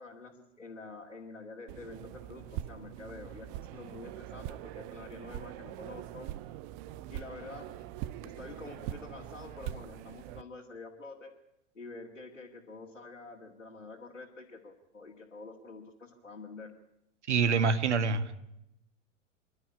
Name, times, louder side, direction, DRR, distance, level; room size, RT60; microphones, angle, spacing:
voice 1, 0.0-6.3 7.1-7.9 8.2-11.3 11.7-16.7, left 3 dB, 85° left, -4 dB, 2.4 m, -47 dB
sound 1, 1.7-10.4, right 13 dB, 35° right, 0.7 m, -43 dB
voice 2, 17.3-18.3, right 5 dB, 65° right, 12 dB, 1.7 m, -26 dB
26.0 x 12.0 x 9.9 m, 0.85 s
figure-of-eight pair, 95°, 37 cm